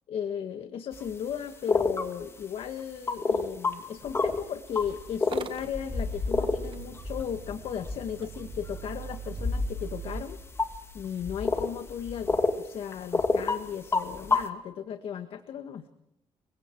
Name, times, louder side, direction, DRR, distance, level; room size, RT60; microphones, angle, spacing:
voice 1, 0.1-10.4 10.9-15.9, left 8 dB, 65° left, 8 dB, 1.7 m, -36 dB
sound 1, 0.9-1.0 1.7-2.1 3.1-3.7 4.1-4.4 4.8-12.6 12.9-13.6 13.9-14.5, left 3 dB, 25° left, 2.5 m, -29 dB
Motor vehicle (road) / Engine starting, 5.2-10.2, right 8 dB, 55° right, 1.6 m, -43 dB
29.5 x 23.5 x 4.7 m, 0.79 s
cardioid pair, 120°, 10 cm